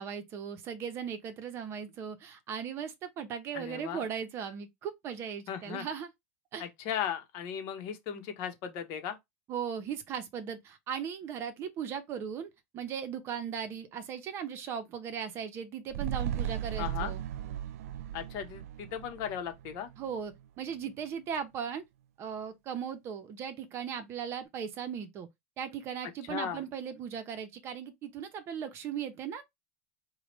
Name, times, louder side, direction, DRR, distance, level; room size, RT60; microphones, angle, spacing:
voice 1, 0.0-6.1 6.5-6.6 9.5-17.2 20.0-21.8 22.2-25.3 25.6-29.4, right 7 dB, 35° right, 0.8 m, -38 dB
voice 2, 3.5-4.0 5.5-5.9 6.6-9.2 16.8-17.1 18.1-19.9 26.3-26.6, left 9 dB, 50° left, 1.0 m, -37 dB
sound 1, 15.9-20.4 20.8-20.9, right 10 dB, 80° right, 0.4 m, -37 dB
4.7 x 2.3 x 3.1 m
supercardioid pair, 150°, 8 cm